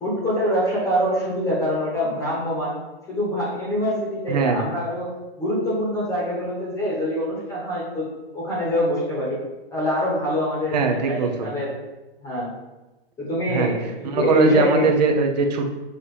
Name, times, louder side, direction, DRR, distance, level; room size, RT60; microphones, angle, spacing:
voice 1, 0.0-2.8 3.1-5.1 5.4-8.1 8.3-9.4 9.7-11.7 12.2-12.5 13.2-14.9, equal, 10° left, -6 dB, 1.2 m, -24 dB
voice 2, 4.3-4.6 10.7-11.5 13.5-15.7, right 4 dB, 40° right, 4 dB, 0.8 m, -21 dB
6.7 x 2.9 x 4.9 m, 1.1 s
hypercardioid pair, 165°, 31 cm